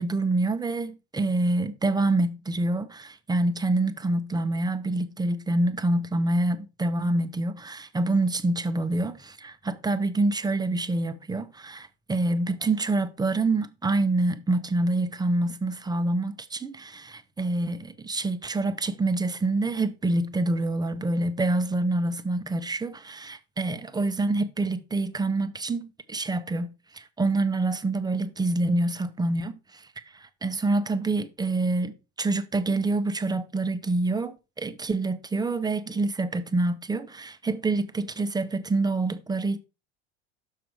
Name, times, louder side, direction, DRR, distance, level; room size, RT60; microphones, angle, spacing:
voice 1, 0.0-29.9 30.1-39.6, right 2 dB, 10° right, 1.0 m, -26 dB
6.7 x 6.1 x 4.6 m
hypercardioid pair, 80°, 32 cm